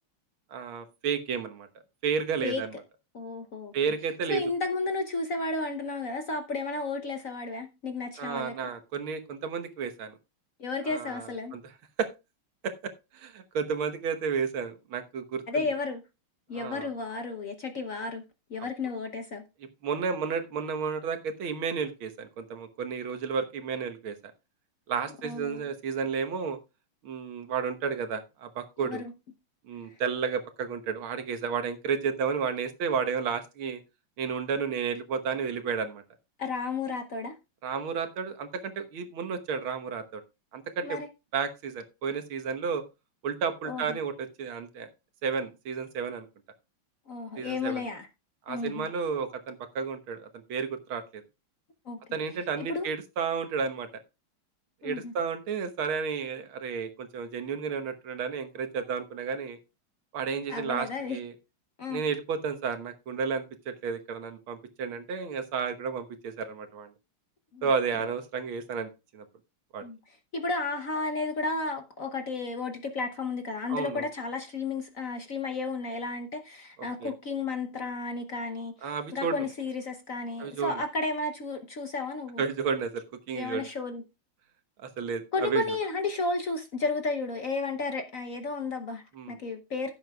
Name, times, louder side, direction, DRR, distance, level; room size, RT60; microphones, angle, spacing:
voice 1, 0.5-1.7 2.0-2.7 3.7-4.4 8.2-10.1 10.8-11.7 12.0-12.1 12.6-15.7 16.5-16.9 19.8-24.2 24.9-26.6 27.0-29.0 29.7-33.8 34.2-36.0 37.6-40.2 40.5-41.0 41.3-42.8 43.2-44.9 45.2-46.3 47.4-47.8 48.5-51.2 52.1-53.9 54.8-59.6 60.1-61.3 61.9-66.9 67.6-69.2 69.7-69.9 73.7-74.1 76.8-77.1 78.8-79.4 80.4-80.8 82.4-83.7 84.8-85.8 89.2-89.4, right 6 dB, 75° right, 2.0 m, -32 dB
voice 2, 3.1-3.7 4.3-8.7 10.6-11.5 15.5-16.0 16.5-18.2 18.5-19.4 25.2-25.6 28.8-29.1 36.4-37.3 40.8-41.1 43.6-44.0 47.1-48.1 48.5-48.9 51.9-52.0 52.6-52.9 54.8-55.1 60.5-61.2 61.8-62.0 67.5-67.7 69.8-70.0 70.3-82.4 83.3-84.0 85.3-89.9, left 3 dB, 50° left, 1.0 m, -33 dB
15.5 x 7.8 x 2.3 m
omnidirectional pair, 2.3 m